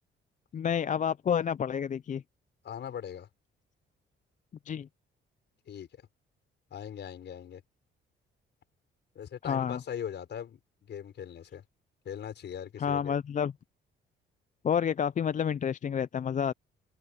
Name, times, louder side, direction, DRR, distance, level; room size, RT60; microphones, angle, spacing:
voice 1, 0.5-2.2 4.7-4.9 9.5-9.8 12.8-13.5 14.6-16.5, left 8 dB, 40° left, 0.5 m, -29 dB
voice 2, 2.6-3.3 5.7-5.9 6.7-7.6 9.1-11.6 12.0-13.1, left 9 dB, 60° left, 5.8 m, -40 dB
cardioid pair, 90°, 20 cm